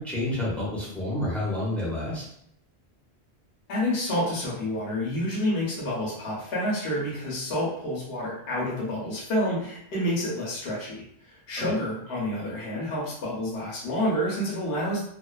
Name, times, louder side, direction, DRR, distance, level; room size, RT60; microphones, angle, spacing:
voice 1, 0.0-2.2 11.6-11.7, left 1 dB, ahead, -6 dB, 0.6 m, -29 dB
voice 2, 3.7-15.0, left 1 dB, 70° left, -6 dB, 1.0 m, -29 dB
2.4 x 2.4 x 2.3 m, 0.70 s
omnidirectional pair, 1.1 m